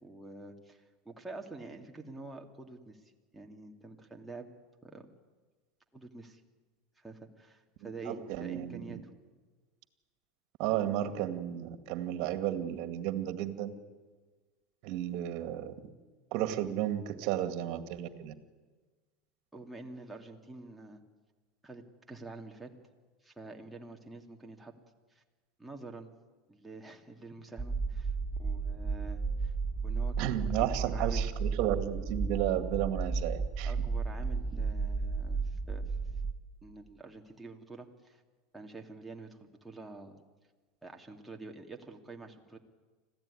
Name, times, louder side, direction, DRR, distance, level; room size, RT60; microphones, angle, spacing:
voice 1, 0.0-4.5 4.8-5.1 5.9-6.4 7.0-9.0 19.5-21.0 21.6-22.7 23.2-24.7 25.1-25.2 25.6-26.1 26.5-28.1 28.4-29.5 29.8-31.2 33.7-36.0 36.6-38.2 38.5-40.2 40.8-42.6, right 3 dB, 5° right, 1 dB, 2.6 m, -47 dB
voice 2, 7.8-9.0 10.6-13.7 14.8-15.7 16.3-18.3 30.2-33.7, right 12 dB, 60° right, 10 dB, 2.2 m, -33 dB
sound 1, 27.6-36.3, right 4 dB, 20° right, 1.3 m, -33 dB
25.5 x 15.5 x 10.0 m, 1.3 s
supercardioid pair, 120°, 0 cm